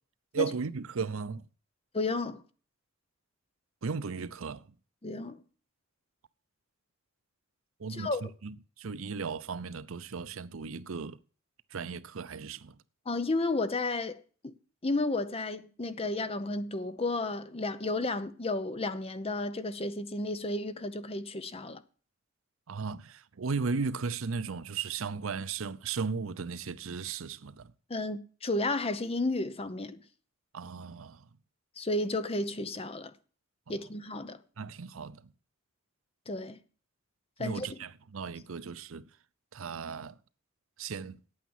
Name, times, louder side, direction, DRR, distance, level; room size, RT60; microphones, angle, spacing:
voice 1, 0.3-1.4 3.8-4.6 7.8-8.1 8.4-11.2 11.7-12.8 22.7-27.7 30.5-31.2 34.6-35.3 37.4-39.0 39.5-40.1 40.8-41.2, right 5 dB, 75° right, 0.6 m, -36 dB
voice 2, 1.9-2.4 5.0-5.4 7.9-8.2 13.1-14.5 14.8-21.8 27.9-30.0 31.8-33.1 33.7-34.4 36.3-36.6 37.4-37.8, left 2 dB, 30° left, 0.8 m, -32 dB
9.2 x 8.8 x 7.2 m
head